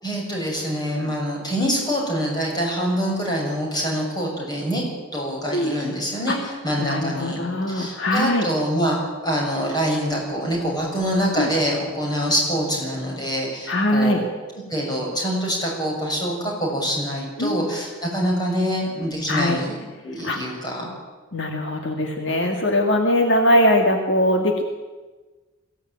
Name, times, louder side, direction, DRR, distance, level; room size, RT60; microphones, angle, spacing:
voice 1, 0.0-4.8 5.1-7.4 7.7-9.0 9.2-14.3 14.7-19.8 20.0-20.9, equal, 20° left, -1 dB, 6.9 m, -25 dB
voice 2, 6.8-8.5 11.4-11.5 13.7-14.2 17.4-17.7 19.3-19.6 20.2-20.6 21.3-24.6, left 1 dB, 65° left, 3 dB, 2.1 m, -21 dB
22.0 x 16.5 x 8.9 m, 1.3 s
head